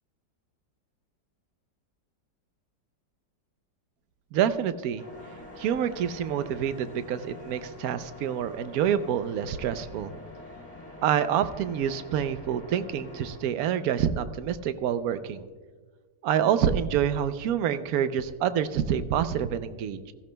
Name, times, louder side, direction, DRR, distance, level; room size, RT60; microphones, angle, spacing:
voice 1, 4.3-5.0 5.6-10.1 11.0-15.5 16.2-20.1, right 9 dB, 70° right, 11 dB, 0.9 m, -27 dB
sound 1, 5.0-13.4, left 2 dB, 20° left, 3.3 m, -46 dB
15.5 x 14.5 x 2.2 m, 1.4 s
omnidirectional pair, 2.0 m